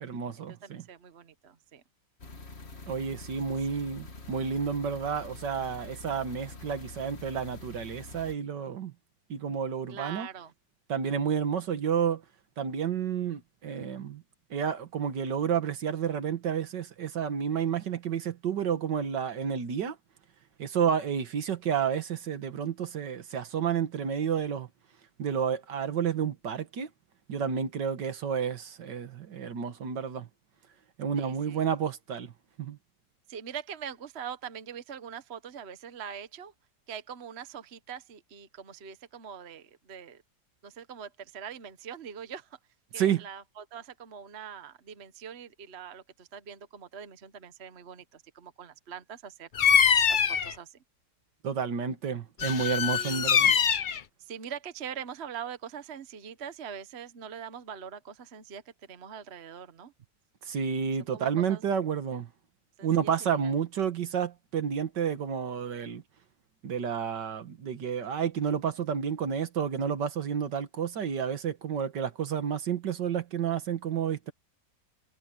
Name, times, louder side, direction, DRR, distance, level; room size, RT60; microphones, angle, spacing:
voice 1, 0.0-0.8 2.9-8.9 9.3-10.3 10.9-12.2 12.6-14.2 14.5-20.0 20.6-24.7 25.2-26.9 27.3-30.3 31.0-32.3 32.6-32.8 43.0-43.3 51.4-53.5 60.4-62.3 62.8-66.0 66.6-74.3, right 7 dB, 85° right, 2.1 m, -30 dB
voice 2, 0.6-1.8 3.7-3.8 9.9-10.5 31.2-31.6 33.3-36.5 36.9-40.2 40.6-42.6 42.9-49.5 50.1-50.8 52.9-53.6 54.2-59.9 61.1-61.6 62.8-63.5, right 7 dB, 45° right, 1.2 m, -43 dB
sound 1, 2.2-8.3, left 3 dB, 40° left, 2.0 m, -46 dB
Bird vocalization bird call bird song, 49.5-50.5 52.4-54.0, left 7 dB, 60° left, 0.5 m, -23 dB
omnidirectional pair, 1.8 m